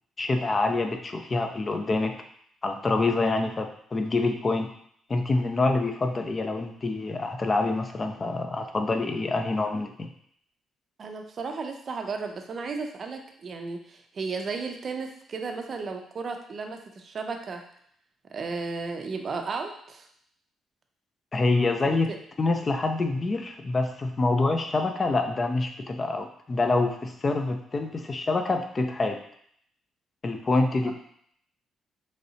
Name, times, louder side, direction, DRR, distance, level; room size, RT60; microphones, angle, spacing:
voice 1, 0.2-2.1 2.6-4.7 5.1-10.1 21.3-22.1 22.4-29.2 30.2-30.9, left 3 dB, 30° left, 5 dB, 0.4 m, -26 dB
voice 2, 11.0-17.6 18.3-20.1 21.8-22.2 30.8-30.9, right 4 dB, 50° right, 4 dB, 0.5 m, -34 dB
3.2 x 2.7 x 2.7 m, 0.66 s
cardioid pair, 90°, 0 cm